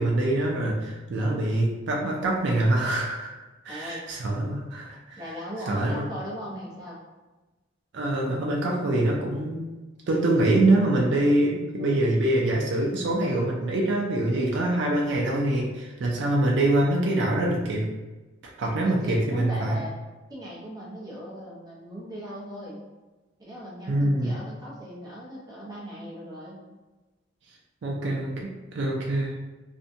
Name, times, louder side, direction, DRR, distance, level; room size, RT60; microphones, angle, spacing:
voice 1, 0.0-3.3 3.6-5.2 5.7-6.0 7.9-9.7 10.1-17.9 18.6-19.8 23.9-24.3 27.8-29.3, right 1 dB, 65° right, -2 dB, 0.4 m, -24 dB
voice 2, 3.7-4.0 5.2-7.0 18.8-19.9 20.3-22.8 23.4-26.6, equal, 20° right, -6 dB, 0.6 m, -38 dB
2.5 x 2.2 x 2.7 m, 1.2 s
head